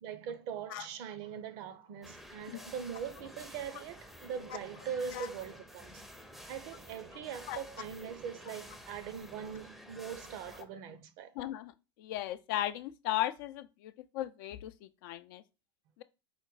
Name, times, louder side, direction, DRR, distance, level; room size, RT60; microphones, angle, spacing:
voice 1, 0.0-6.0 6.5-11.4, right 7 dB, 50° right, 0.7 m, -41 dB
sound 1, 2.0-10.6, equal, ahead, 0.6 m, -51 dB
voice 2, 11.4-11.7 12.0-15.4, left 13 dB, 50° left, 0.4 m, -36 dB
5.0 x 2.1 x 3.9 m
hypercardioid pair, 95°, 14 cm